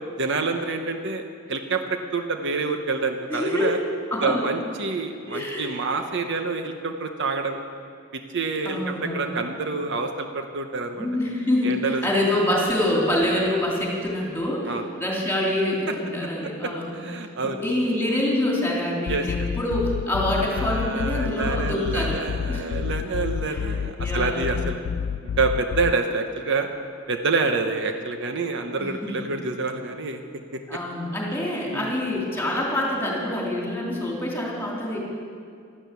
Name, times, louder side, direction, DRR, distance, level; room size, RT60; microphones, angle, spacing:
voice 1, 0.2-1.2 1.5-3.8 4.2-7.6 8.1-11.1 11.6-12.0 13.3-13.4 14.7-14.8 16.9-17.6 19.1-19.5 20.5-24.8 25.4-26.7 27.1-30.2 30.5-30.6 31.7-31.9, right 3 dB, 60° right, 6 dB, 1.0 m, -27 dB
voice 2, 3.3-3.7 4.1-4.4 5.3-5.7 8.6-9.4 10.9-17.0 17.4-22.2 22.5-22.7 23.5-23.6 24.0-24.6 28.8-29.1 30.7-35.0, left 1 dB, 10° left, -3 dB, 3.3 m, -26 dB
sound 1, 19.1-25.9, left 7 dB, 60° left, 0.3 m, -29 dB
12.5 x 12.5 x 8.3 m, 2.2 s
head